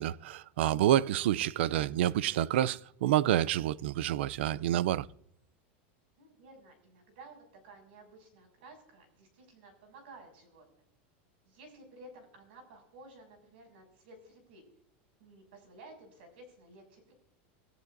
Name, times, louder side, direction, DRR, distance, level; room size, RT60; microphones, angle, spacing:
voice 1, 0.0-5.1, right 12 dB, 85° right, 0.4 m, -28 dB
voice 2, 6.2-10.8 11.4-14.6 15.2-17.1, right 2 dB, 70° right, 6.7 m, -54 dB
25.0 x 14.5 x 2.6 m
supercardioid pair, 175°, 6 cm